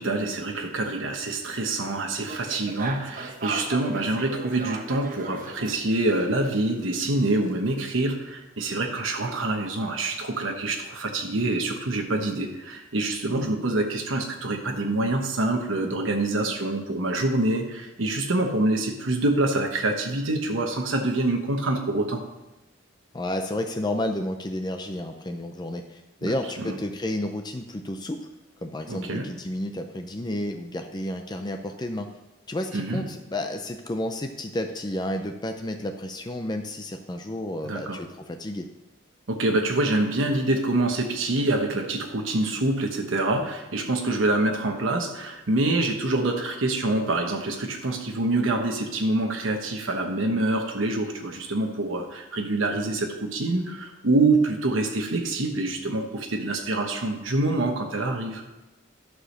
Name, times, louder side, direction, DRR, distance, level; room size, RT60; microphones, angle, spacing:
voice 1, 0.0-22.2 26.2-26.8 28.9-29.3 32.7-33.0 37.6-38.0 39.3-58.4, right 2 dB, 85° right, 3 dB, 1.1 m, -26 dB
sound 1, 2.3-6.5 6.8-8.1, right 3 dB, 45° right, 0.9 m, -38 dB
voice 2, 23.1-28.3 28.6-32.1 32.5-38.7, left 1 dB, 20° left, 5 dB, 0.5 m, -31 dB
11.5 x 4.9 x 6.4 m, 1.0 s
head